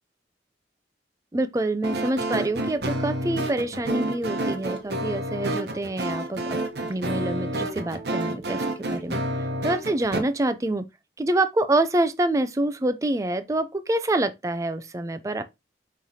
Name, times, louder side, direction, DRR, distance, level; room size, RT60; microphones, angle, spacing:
voice 1, 1.3-6.6 6.9-9.2 9.6-10.8 11.2-15.4, right 2 dB, 20° right, 0.3 m, -26 dB
sound 1, 1.8-10.2, right 1 dB, 70° right, 0.8 m, -29 dB
5.6 x 3.1 x 2.7 m
head